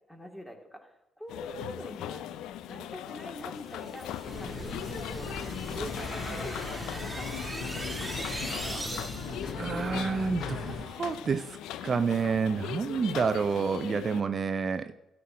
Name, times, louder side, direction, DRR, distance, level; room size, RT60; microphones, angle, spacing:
voice 1, 0.1-2.3 2.7-7.3 8.0-8.9, equal, 10° left, 2 dB, 2.4 m, -44 dB
sound 1, 1.3-14.2, left 11 dB, 75° left, 0.4 m, -40 dB
sound 2, 3.6-9.5, right 1 dB, 10° right, 2.4 m, -41 dB
sound 3, 4.2-10.8, left 3 dB, 55° left, 1.9 m, -38 dB
voice 2, 9.6-11.6 11.8-14.9, right 5 dB, 45° right, 11 dB, 0.5 m, -29 dB
13.0 x 4.5 x 7.4 m, 0.94 s
hypercardioid pair, 55°, 0 cm